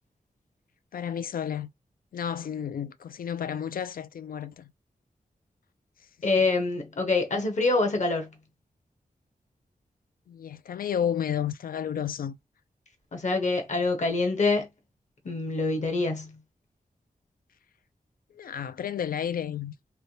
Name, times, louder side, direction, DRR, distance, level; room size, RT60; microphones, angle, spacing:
voice 1, 0.9-1.7 2.1-4.7 6.3-6.4 10.3-12.4 18.3-19.7, left 8 dB, 70° left, 0.4 m, -32 dB
voice 2, 6.2-8.3 13.1-14.7 15.2-16.3, left 3 dB, 50° left, 1.0 m, -25 dB
3.3 x 2.6 x 2.8 m
wide cardioid pair, 145°, 15 cm